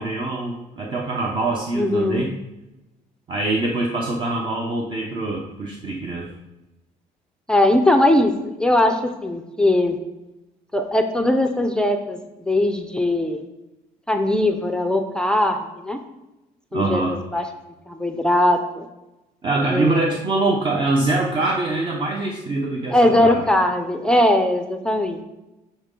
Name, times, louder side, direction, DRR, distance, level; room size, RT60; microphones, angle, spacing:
voice 1, 0.0-2.3 3.3-6.3 16.7-17.4 19.4-23.5, right 2 dB, 30° right, 0 dB, 0.7 m, -24 dB
voice 2, 1.8-2.3 7.5-8.3 8.6-10.0 10.7-12.2 12.5-13.4 14.1-15.6 15.8-16.0 16.7-17.4 17.9-18.9 19.7-20.1 22.9-25.2, left 1 dB, 5° left, 5 dB, 0.5 m, -19 dB
9.3 x 4.0 x 3.7 m, 1.0 s
cardioid pair, 145°, 16 cm